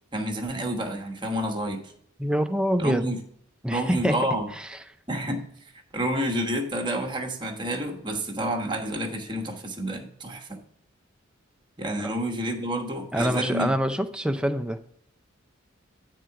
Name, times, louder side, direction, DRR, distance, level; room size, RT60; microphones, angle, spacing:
voice 1, 0.1-1.8 2.8-3.2 3.7-4.5 5.1-5.4 5.9-10.6 11.8-13.7, right 1 dB, 25° right, 2 dB, 1.1 m, -29 dB
voice 2, 2.2-3.1 3.6-4.2 4.5-4.7 12.0-12.1 13.1-14.8, equal, 5° right, 7 dB, 0.5 m, -25 dB
9.1 x 3.8 x 5.7 m, 0.66 s
head